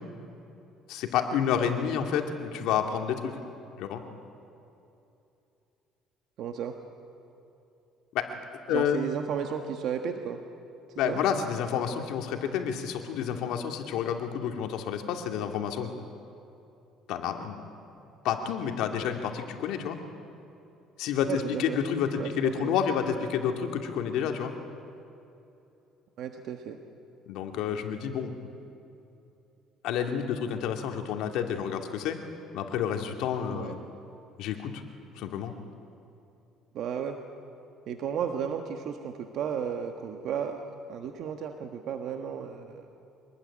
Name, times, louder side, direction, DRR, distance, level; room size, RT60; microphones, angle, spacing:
voice 1, 0.9-3.4 3.8-4.0 8.1-8.3 8.7-9.0 11.0-15.9 17.1-17.6 18.2-20.0 21.0-24.5 27.3-28.4 29.8-32.2 32.5-33.8 34.4-34.8 35.2-35.5, left 8 dB, 75° left, 4 dB, 2.5 m, -29 dB
voice 2, 6.4-6.8 8.7-10.4 11.0-11.2 21.3-21.8 22.2-22.7 26.2-26.8 33.5-33.8 36.7-37.2 37.9-40.6 40.9-42.9, right 7 dB, 60° right, 5 dB, 1.5 m, -33 dB
25.0 x 20.5 x 10.0 m, 2.8 s
cardioid pair, 135°, 0 cm